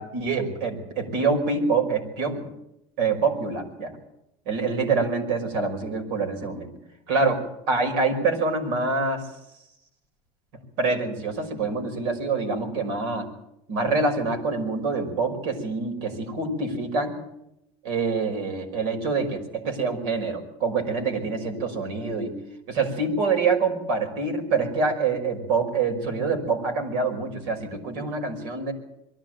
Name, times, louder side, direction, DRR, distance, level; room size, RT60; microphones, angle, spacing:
voice 1, 0.0-2.5 3.0-3.9 4.5-6.7 7.1-9.3 10.8-13.3 13.7-17.2 17.8-22.3 22.7-28.7, right 4 dB, 70° right, 5 dB, 5.5 m, -26 dB
23.0 x 15.0 x 9.1 m, 0.84 s
cardioid pair, 165°, 15 cm